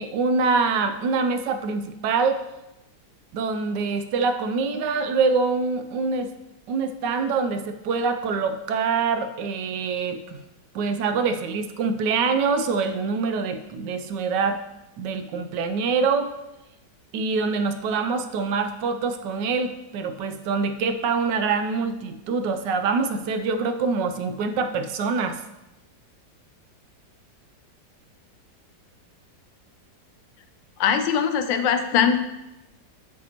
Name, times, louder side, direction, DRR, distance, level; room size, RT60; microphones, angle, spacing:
voice 1, 0.0-2.4 3.3-6.3 6.7-10.4 10.7-14.6 15.0-16.3 17.1-25.4, right 4 dB, 80° right, 8 dB, 1.2 m, -25 dB
voice 2, 30.8-32.2, left 7 dB, 85° left, 8 dB, 1.3 m, -21 dB
8.0 x 6.1 x 2.9 m, 0.94 s
omnidirectional pair, 1.9 m